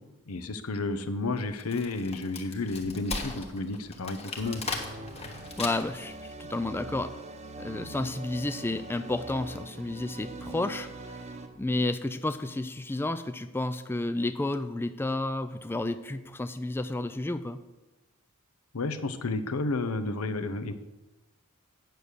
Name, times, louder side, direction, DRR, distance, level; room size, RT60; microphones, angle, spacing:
voice 1, 0.3-4.6 18.7-20.7, left 3 dB, 85° left, 10 dB, 0.8 m, -31 dB
Wood, 1.4-6.1, left 3 dB, 30° left, 1.2 m, -37 dB
sound 1, 4.4-11.5, right 2 dB, 30° right, 0.8 m, -42 dB
voice 2, 5.6-7.1 7.6-11.2 11.6-17.6, left 2 dB, 10° left, 10 dB, 0.3 m, -31 dB
9.2 x 6.4 x 6.8 m, 1.1 s
head